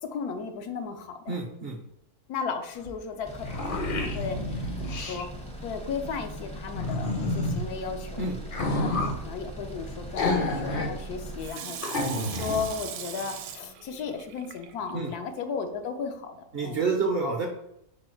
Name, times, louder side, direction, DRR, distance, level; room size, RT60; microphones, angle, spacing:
voice 1, 0.1-1.4 2.3-5.3 5.6-8.3 8.6-16.9, left 5 dB, 85° left, 6 dB, 1.2 m, -35 dB
voice 2, 1.3-1.8 8.2-8.3 14.9-15.1 16.5-17.5, right 4 dB, 60° right, 2 dB, 0.6 m, -28 dB
sound 1, 2.9-3.0 3.2-5.2 6.7-7.6 8.5-9.2 10.2-10.9 11.3-11.4 11.8-12.7, left 2 dB, 50° left, 0.7 m, -29 dB
sound 2, 3.2-11.5, right 1 dB, 10° left, 0.4 m, -40 dB
Water tap faucet / Sink (filling or washing), 11.4-15.2 15.7-15.8, right 8 dB, 80° right, 1.0 m, -40 dB
5.3 x 2.3 x 4.4 m, 0.80 s
omnidirectional pair, 1.6 m